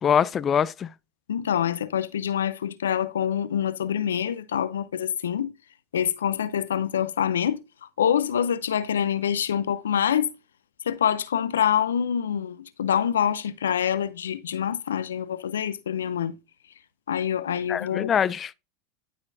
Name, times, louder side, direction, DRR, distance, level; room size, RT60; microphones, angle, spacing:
voice 1, 0.0-0.9 17.7-18.5, left 8 dB, 30° left, 0.4 m, -23 dB
voice 2, 1.3-5.5 5.9-7.6 8.0-10.3 10.9-16.3 17.1-18.1, left 9 dB, 85° left, 0.6 m, -25 dB
12.5 x 4.4 x 2.7 m
hypercardioid pair, 95°, 0 cm